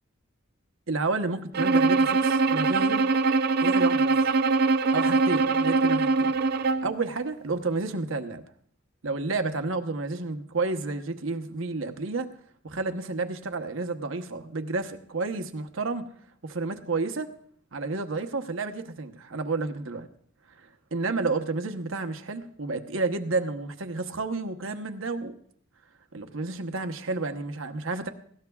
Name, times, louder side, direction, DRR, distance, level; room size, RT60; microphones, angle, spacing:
voice 1, 0.9-3.1 3.6-4.1 4.9-6.3 6.8-8.4 9.0-12.3 12.6-16.1 16.4-17.3 17.7-20.1 20.6-25.3 26.1-28.1, right 3 dB, 80° right, 6 dB, 1.0 m, -30 dB
Bowed string instrument, 1.5-7.0, right 4 dB, 50° right, 0.4 m, -23 dB
19.5 x 17.0 x 2.4 m, 0.63 s
head